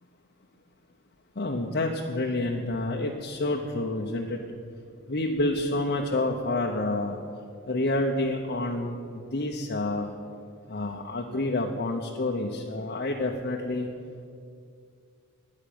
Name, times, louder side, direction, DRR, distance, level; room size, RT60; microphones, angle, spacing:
voice 1, 1.4-4.4 5.1-7.2 7.7-10.1 10.7-13.9, left 2 dB, 45° left, 0 dB, 1.0 m, -28 dB
12.5 x 9.7 x 8.8 m, 2.3 s
head